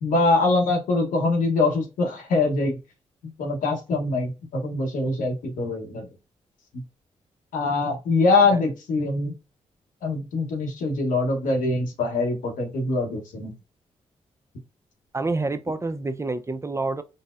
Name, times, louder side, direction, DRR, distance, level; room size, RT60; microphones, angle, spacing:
voice 1, 0.0-2.7 3.4-6.1 7.5-9.3 10.0-13.5, left 3 dB, 90° left, 1.0 m, -23 dB
voice 2, 15.1-17.0, right 3 dB, 20° right, 0.4 m, -28 dB
4.0 x 2.0 x 2.4 m
supercardioid pair, 55°, 13 cm